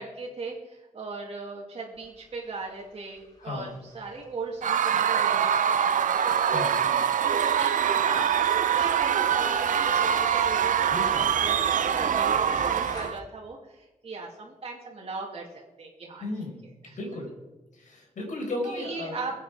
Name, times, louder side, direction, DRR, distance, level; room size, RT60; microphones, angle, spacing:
voice 1, 0.0-7.0 7.4-15.5 15.8-16.2 18.6-19.3, right 3 dB, 50° right, -3 dB, 2.4 m, -38 dB
sound 1, 2.0-13.1, left 1 dB, 30° left, 3.0 m, -47 dB
voice 2, 3.4-3.7 6.5-6.8 10.9-11.3 16.2-16.6 16.9-17.3 17.7-19.2, left 2 dB, 75° left, 0 dB, 4.8 m, -35 dB
Screaming / Cheering / Crowd, 4.6-13.2, right 8 dB, 85° right, 0.6 m, -24 dB
22.0 x 8.4 x 5.0 m, 1.1 s
wide cardioid pair, 140°, 13 cm